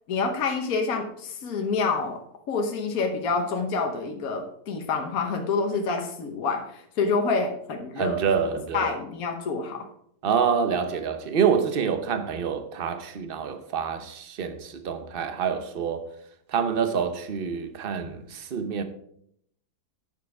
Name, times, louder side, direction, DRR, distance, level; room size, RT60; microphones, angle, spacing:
voice 1, 0.1-2.2 2.5-8.2 8.7-9.9, left 4 dB, 60° left, 1.4 m, -27 dB
voice 2, 8.0-8.9 10.2-16.1 16.5-18.8, right 6 dB, 45° right, 0.8 m, -27 dB
9.4 x 6.6 x 4.8 m
omnidirectional pair, 1.8 m